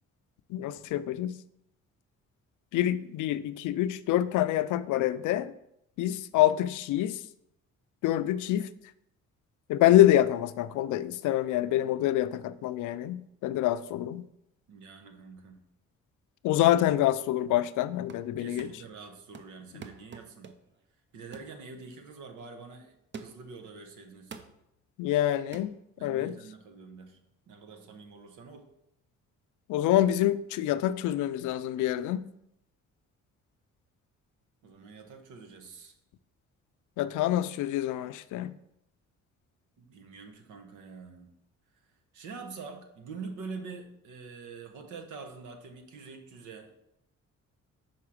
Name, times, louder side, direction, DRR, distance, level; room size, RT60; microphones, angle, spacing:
voice 1, 0.5-1.4 2.7-5.5 6.0-7.2 8.0-8.7 9.7-14.3 16.4-18.7 25.0-25.7 26.0-26.4 29.7-32.3 37.0-38.5, left 13 dB, 80° left, 0.4 m, -26 dB
voice 2, 14.7-15.6 18.4-20.5 21.1-24.4 26.0-27.2 27.5-28.7 34.6-35.9 39.8-41.3 42.1-46.8, right 4 dB, 80° right, 1.1 m, -45 dB
sound 1, 18.1-18.3 18.6-19.0 19.3-20.8 21.3-21.6 22.1-22.2 23.1-23.6 24.3-24.6 25.5-25.7, right 5 dB, 40° right, 0.6 m, -47 dB
5.8 x 4.6 x 4.9 m
cardioid pair, 90°, 30 cm